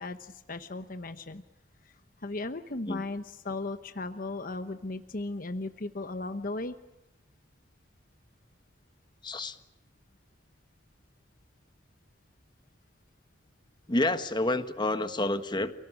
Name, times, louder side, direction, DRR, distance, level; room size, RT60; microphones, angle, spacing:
voice 1, 0.0-1.4 2.2-6.7, left 2 dB, 50° left, 9 dB, 1.0 m, -36 dB
voice 2, 9.2-9.5 13.9-15.7, left 2 dB, 25° left, 10 dB, 1.5 m, -29 dB
29.5 x 18.0 x 9.9 m, 0.96 s
head